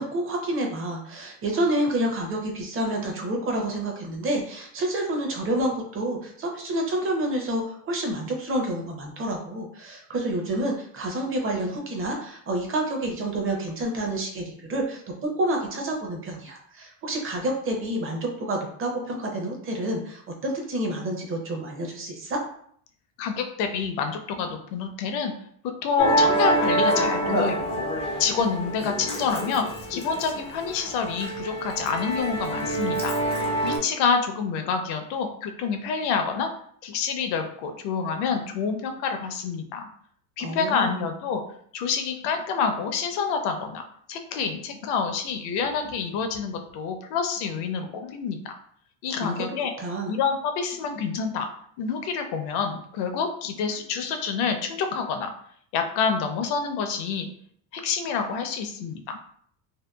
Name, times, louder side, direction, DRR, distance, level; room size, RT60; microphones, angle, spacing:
voice 1, 0.0-22.4 40.4-41.1 49.2-49.4 49.8-50.2, right 1 dB, 30° right, 1 dB, 0.6 m, -28 dB
voice 2, 23.2-25.3 25.8-27.9 28.2-33.2 33.6-36.5 36.8-39.9 40.4-41.4 41.7-43.8 44.1-48.5 49.0-49.7 50.1-51.5 51.8-55.3 55.7-57.3 57.7-59.2, left 5 dB, 60° left, 6 dB, 0.6 m, -27 dB
Musical instrument, 26.0-33.8, right 1 dB, 15° left, 0.3 m, -26 dB
2.8 x 2.2 x 2.2 m, 0.63 s
supercardioid pair, 120°, 46 cm